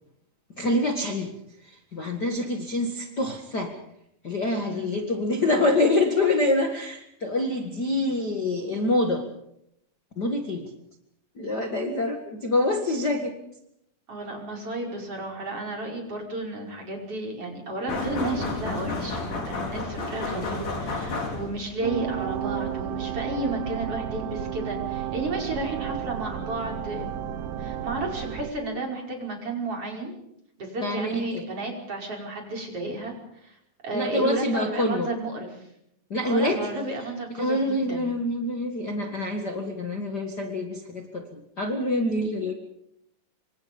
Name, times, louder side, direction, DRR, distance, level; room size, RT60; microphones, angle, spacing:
voice 1, 0.6-1.3 1.6-3.7 4.2-9.2 10.2-10.7 11.4-13.4 30.8-31.5 33.9-35.1 36.1-36.7 37.0-42.5, left 2 dB, 35° left, 3 dB, 2.0 m, -26 dB
voice 2, 4.6-5.0 14.1-27.1 27.6-30.2 30.6-33.2 33.4-33.6 33.8-35.7 36.2-38.1, right 2 dB, 40° right, 1 dB, 6.2 m, -32 dB
sound 1, 17.9-21.8, left 3 dB, 65° left, 6.3 m, -31 dB
A minor drone loop, 21.8-28.5, right 10 dB, 70° right, 2.8 m, -32 dB
27.0 x 25.5 x 5.3 m, 0.77 s
omnidirectional pair, 4.0 m